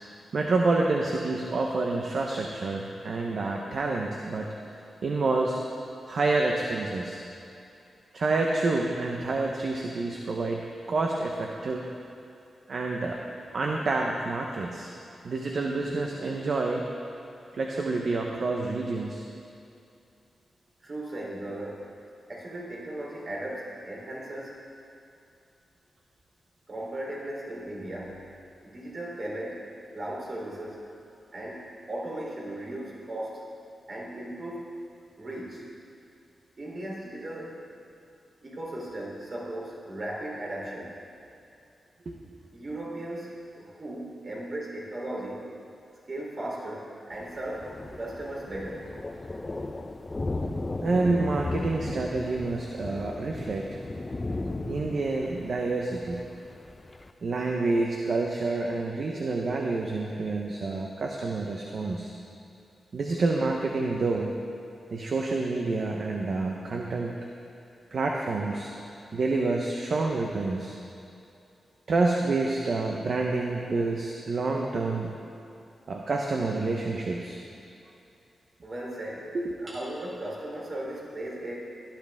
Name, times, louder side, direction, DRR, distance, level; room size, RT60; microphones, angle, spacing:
voice 1, 0.3-4.5 5.0-5.6 6.1-7.2 8.1-10.6 10.9-11.9 12.7-13.2 13.5-14.9 15.2-16.8 17.5-19.2 42.1-42.2 50.8-53.7 54.6-56.2 57.2-62.1 62.9-64.4 64.9-67.1 67.9-68.7 69.1-70.8 71.9-75.1 75.9-77.4 79.3-79.7, right 3 dB, 60° right, 0 dB, 1.1 m, -28 dB
voice 2, 20.8-21.9 22.3-24.6 26.7-28.3 28.6-29.6 29.9-30.8 31.3-33.5 33.9-34.7 35.2-35.6 36.6-37.6 38.4-40.9 42.5-45.5 46.1-47.7 48.0-48.9 54.3-54.4 78.6-79.3 79.6-81.5, right 1 dB, 45° right, -4 dB, 3.6 m, -37 dB
Thunder, 47.1-57.1, left 2 dB, 30° left, 0.7 m, -36 dB
17.5 x 12.0 x 3.7 m, 2.6 s
cardioid pair, 75°, 0 cm